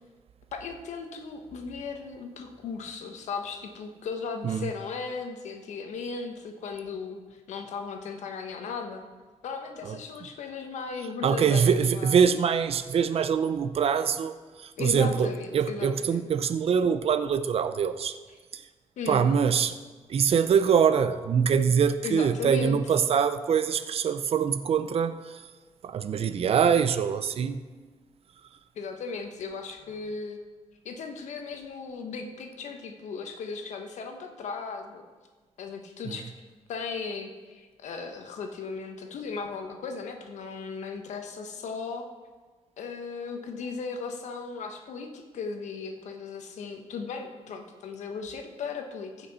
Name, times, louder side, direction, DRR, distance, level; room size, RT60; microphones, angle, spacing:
voice 1, 0.5-9.0 9.4-12.2 14.8-16.3 19.0-19.3 22.0-22.8 28.7-30.4 30.8-35.0 35.6-36.3 36.7-42.1 42.8-49.3, left 5 dB, 80° left, 5 dB, 1.2 m, -36 dB
voice 2, 11.2-18.1 18.5-18.6 19.1-19.8 20.1-25.4 25.8-27.6 36.1-36.2, right 7 dB, 55° right, 11 dB, 0.6 m, -24 dB
15.5 x 5.9 x 4.2 m, 1.4 s
cardioid pair, 90°, 12 cm